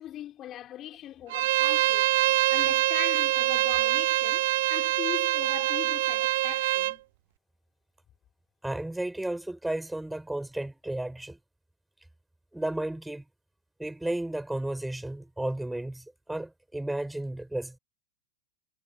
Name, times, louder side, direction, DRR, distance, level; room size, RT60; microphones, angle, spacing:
voice 1, 0.0-2.1 2.5-7.0, left 12 dB, 30° left, 4.6 m, -40 dB
Bowed string instrument, 1.3-6.9, right 17 dB, 55° right, 1.0 m, -25 dB
voice 2, 8.6-11.4 12.5-13.2 13.8-17.8, right 1 dB, 5° right, 6.1 m, -33 dB
figure-of-eight pair, 90°, 0 cm